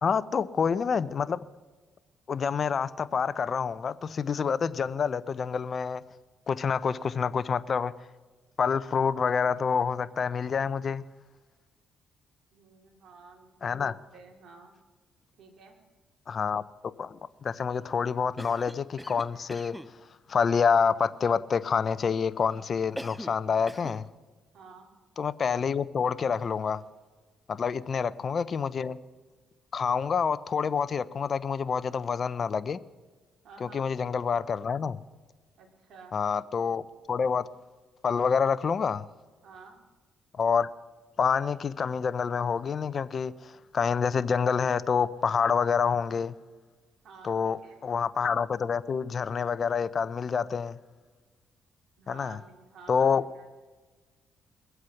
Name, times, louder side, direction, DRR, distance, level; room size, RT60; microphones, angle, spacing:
voice 1, 0.0-1.4 2.3-6.0 6.5-7.9 8.6-11.0 13.6-13.9 16.3-16.6 17.0-19.8 20.3-24.0 25.2-26.8 27.5-29.0 29.7-32.8 33.6-35.0 36.1-37.4 38.0-39.0 40.3-40.7 41.2-46.3 47.2-50.8 52.1-52.4 52.9-53.2, left 6 dB, 45° left, 0.6 m, -27 dB
voice 2, 12.5-13.8 14.1-14.7 15.4-15.8 24.5-24.9 27.6-28.0 33.4-33.9 35.6-36.2 39.4-39.8 47.0-47.8 52.0-53.5, right 4 dB, 70° right, 3.0 m, -51 dB
Cough, 18.4-19.9 23.0-23.4 23.7-24.0, equal, ahead, 0.5 m, -41 dB
22.0 x 8.1 x 5.9 m
cardioid pair, 90°, 0 cm